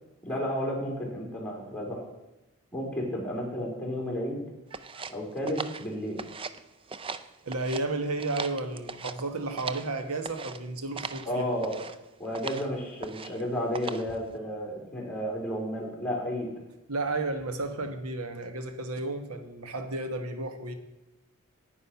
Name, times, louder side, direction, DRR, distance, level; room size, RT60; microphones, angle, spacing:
voice 1, 0.2-2.0 2.7-4.4 5.1-6.2 11.2-11.7 12.2-16.5, equal, 5° left, -1 dB, 4.0 m, -32 dB
sound 1, 4.7-6.6 6.9-7.8 8.2-9.9 10.2-10.6 11.0-11.3 11.6-12.0 12.3-12.7 13.0-13.4 13.7-14.2, right 4 dB, 25° right, 0.5 m, -39 dB
voice 2, 7.4-11.5 16.9-20.7, right 2 dB, 90° right, 8 dB, 1.2 m, -32 dB
9.8 x 9.6 x 5.7 m, 1.0 s
head